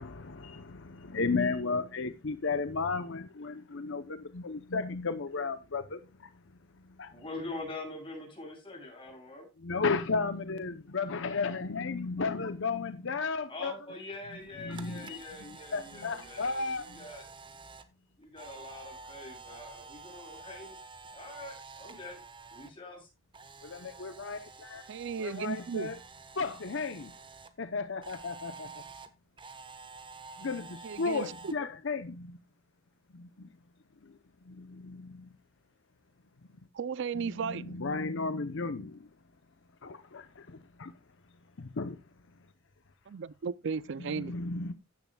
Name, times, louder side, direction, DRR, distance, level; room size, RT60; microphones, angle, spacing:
voice 1, 0.0-6.3 7.0-7.1 9.6-13.7 14.6-15.2 15.7-17.0 23.6-24.9 25.2-26.0 26.4-27.1 27.6-28.8 30.4-32.4 33.1-33.5 34.0-34.1 34.4-35.3 37.2-39.0 39.8-40.9 41.6-42.0 44.2-44.7, left 4 dB, 65° left, 0.8 m, -34 dB
voice 2, 7.1-9.5 13.5-17.3 18.2-20.8 21.1-22.2 22.5-23.1, left 2 dB, 25° left, 7.3 m, -44 dB
Camera, 14.4-22.7 23.0-27.5 28.0-31.5, right 4 dB, 25° right, 1.2 m, -49 dB
voice 3, 24.9-25.9 30.8-31.3 36.7-37.8 43.1-44.3, right 6 dB, 65° right, 0.5 m, -35 dB
15.0 x 10.5 x 2.3 m
head